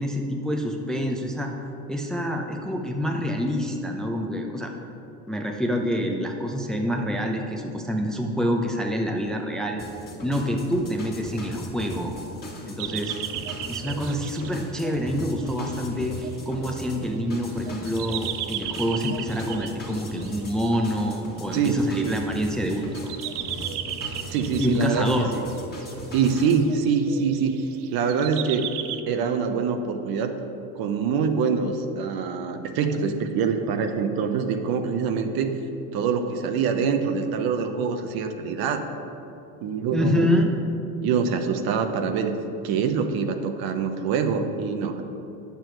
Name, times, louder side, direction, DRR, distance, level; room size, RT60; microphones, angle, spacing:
voice 1, 0.0-1.5 1.9-4.7 5.3-9.8 10.2-12.1 12.7-13.2 13.7-23.1 24.6-25.3 39.9-40.5, equal, ahead, 2 dB, 0.6 m, -27 dB
sound 1, 9.8-26.6, left 1 dB, 20° left, 1.7 m, -39 dB
sound 2, 12.8-20.7 21.7-22.4 22.7-29.0, right 11 dB, 80° right, 0.6 m, -36 dB
voice 2, 21.5-22.2 24.3-25.4 26.1-27.6 27.9-28.7 29.1-30.3 30.7-35.6 35.9-38.8 39.6-40.3 41.0-42.4 42.6-45.0, right 6 dB, 55° right, 7 dB, 0.9 m, -25 dB
9.0 x 6.9 x 4.5 m, 2.8 s
supercardioid pair, 100°, 45 cm